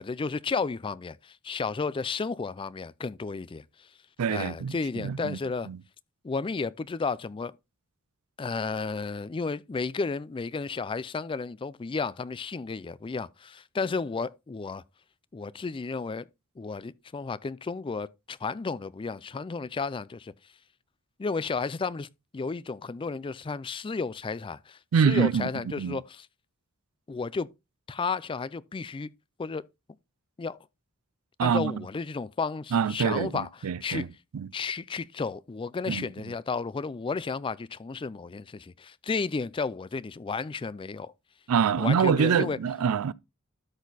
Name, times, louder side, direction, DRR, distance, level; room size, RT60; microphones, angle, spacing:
voice 1, 0.0-3.9 4.3-5.7 6.2-7.5 8.4-14.8 15.3-16.3 16.6-20.3 21.2-22.1 22.3-26.3 27.1-27.5 27.9-29.1 29.4-29.6 30.4-30.6 31.4-33.5 33.8-34.1 34.5-41.1 41.8-42.6, left 4 dB, 25° left, 0.4 m, -32 dB
voice 2, 4.2-4.8 5.0-5.4 5.7-5.8 24.9-25.5 25.8-26.0 31.4-31.8 32.7-34.1 34.3-34.5 35.9-36.1 41.5-43.1, right 6 dB, 85° right, 0.4 m, -25 dB
13.0 x 4.3 x 4.0 m
head